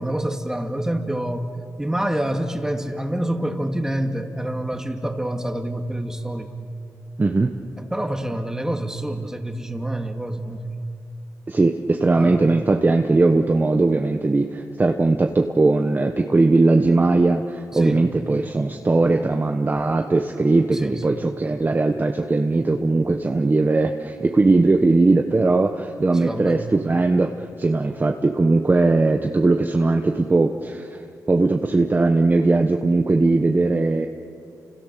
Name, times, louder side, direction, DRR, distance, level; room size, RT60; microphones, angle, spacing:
voice 1, 0.0-1.5 1.8-6.6 7.8-10.7 12.2-12.4 17.7-18.1 20.7-21.0 26.1-26.6, right 1 dB, 10° right, 4 dB, 2.3 m, -27 dB
voice 2, 7.2-7.6 11.5-31.0 31.3-34.1, right 3 dB, 25° right, 4 dB, 1.2 m, -19 dB
30.0 x 27.0 x 6.8 m, 2.5 s
cardioid pair, 85°, 7 cm